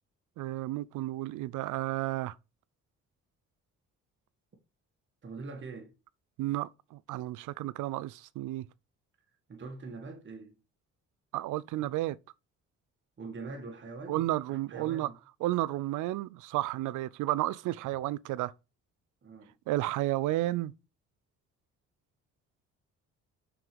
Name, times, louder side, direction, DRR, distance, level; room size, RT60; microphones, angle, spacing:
voice 1, 0.4-2.4 6.4-8.7 11.3-12.2 14.1-15.1 15.4-18.5 19.7-20.7, right 16 dB, 80° right, 0.5 m, -32 dB
voice 2, 5.2-5.9 9.5-10.6 11.8-11.9 13.2-15.1 19.2-19.5, right 3 dB, 40° right, 1.6 m, -43 dB
6.0 x 4.7 x 5.1 m
cardioid pair, 90°, 30 cm